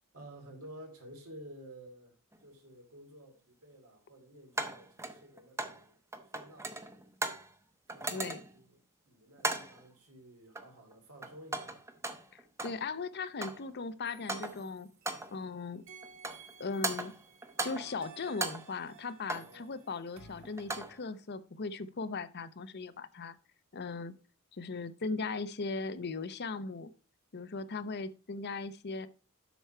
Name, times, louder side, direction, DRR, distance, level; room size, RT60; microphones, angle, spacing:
voice 1, 0.1-2.1 2.4-6.0 6.3-6.8 7.9-8.3 8.5-8.8 9.1-11.9 19.3-19.8, right 1 dB, 80° right, 2.8 m, -52 dB
sound 1, 2.3-2.4 4.6-5.8 6.1-7.5 7.9-8.6 9.4-9.8 10.5-10.9 11.2-12.8 13.1-13.7 14.1-14.7 15.1-15.4 16.0-16.5 16.8-18.0 18.3-19.6 20.4-21.0, right 2 dB, 15° right, 0.8 m, -38 dB
voice 2, 8.1-8.4 12.3-14.9 15.3-15.8 16.6-17.1 17.6-23.4 23.7-24.1 24.5-26.9 27.3-29.1, left 4 dB, 50° left, 0.7 m, -38 dB
sound 2, 14.0-15.4 15.9-20.9, right 6 dB, 65° right, 1.5 m, -55 dB
8.1 x 6.2 x 4.4 m
head